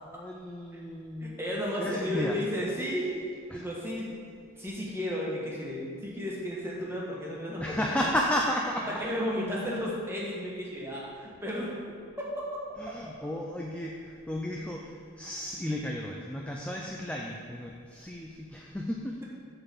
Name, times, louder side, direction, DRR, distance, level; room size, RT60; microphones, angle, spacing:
voice 1, 0.0-1.4 1.8-2.4 3.5-3.7 7.6-9.0 12.8-19.2, left 1 dB, 5° left, -1 dB, 0.3 m, -33 dB
voice 2, 1.2-4.1 4.6-7.9 9.0-11.7 12.4-12.5, equal, 10° right, -4 dB, 1.3 m, -33 dB
7.8 x 4.0 x 6.8 m, 2.1 s
head